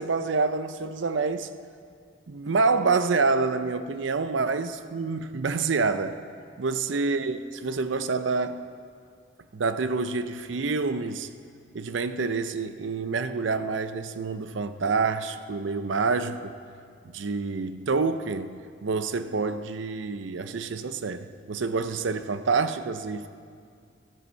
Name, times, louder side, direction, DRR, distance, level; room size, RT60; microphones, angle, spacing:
voice 1, 0.0-1.6 2.3-6.2 6.6-8.7 9.5-11.3 11.7-16.6 17.0-23.3, right 4 dB, 75° right, 11 dB, 0.6 m, -27 dB
13.5 x 13.0 x 4.5 m, 2.2 s
head